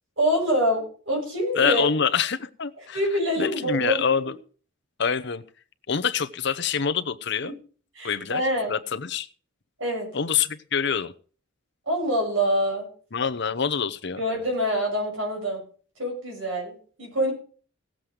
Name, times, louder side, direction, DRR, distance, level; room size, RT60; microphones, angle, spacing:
voice 1, 0.2-1.8 2.9-4.0 7.4-7.5 7.9-8.8 9.8-10.1 11.9-12.9 14.2-15.6 16.0-17.3, equal, 65° right, 0 dB, 6.5 m, -25 dB
voice 2, 1.6-3.0 3.4-4.3 5.0-5.4 5.9-7.5 8.0-8.4 8.7-9.3 10.1-11.1 13.1-14.2, left 6 dB, 55° left, 11 dB, 0.8 m, -25 dB
17.0 x 7.5 x 4.9 m, 0.41 s
head